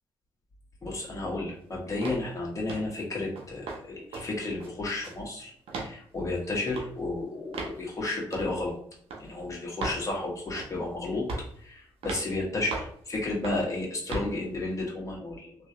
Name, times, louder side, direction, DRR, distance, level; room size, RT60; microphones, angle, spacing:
voice 1, 0.8-8.7 9.2-11.2 11.6-15.5, left 2 dB, 30° left, -3 dB, 1.3 m, -32 dB
sound 1, 2.0-2.3 2.7-2.9 3.4-3.8 4.1-4.3 4.6-5.2 5.7-5.9 6.7-6.9 7.5-7.8 8.3-8.5 9.1-9.2 9.8-10.0 10.6-10.8 11.3-11.6 12.0-12.3 12.7-13.0 13.4-13.7 14.1-14.3, right 3 dB, 70° right, 0.7 m, -36 dB
3.0 x 2.5 x 2.8 m, 0.62 s
supercardioid pair, 50°, 10 cm